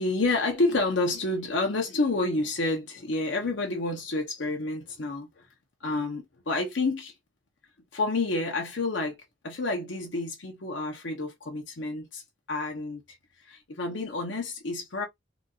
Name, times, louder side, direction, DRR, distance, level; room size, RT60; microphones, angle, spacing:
voice 1, 0.0-5.4 5.8-7.1 7.9-9.2 9.4-12.2 12.5-13.0 13.4-15.1, left 2 dB, 65° left, 0.8 m, -29 dB
3.9 x 2.5 x 2.4 m
head